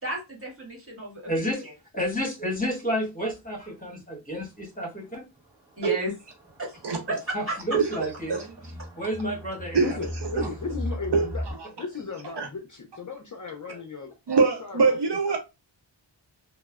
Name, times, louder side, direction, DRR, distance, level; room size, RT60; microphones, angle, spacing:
voice 1, 0.0-1.3 5.8-6.1 6.6-6.8 7.1-7.5, right 1 dB, 30° right, 1.6 m, -32 dB
voice 2, 1.3-1.6 1.9-5.2 7.3-8.4 9.0-10.0 13.7-13.8, equal, 20° left, 1.3 m, -30 dB
sound 1, 3.3-3.4 3.8-3.9 4.4-4.5 5.4-11.5, left 1 dB, 10° right, 0.7 m, -38 dB
voice 3, 9.8-11.4 11.8-14.1 14.4-14.9 15.3-15.4, left 5 dB, 40° left, 0.5 m, -36 dB
voice 4, 11.1-11.7 12.4-12.5 14.3-15.4, right 5 dB, 60° right, 0.6 m, -23 dB
3.1 x 2.1 x 2.2 m
wide cardioid pair, 65°, 47 cm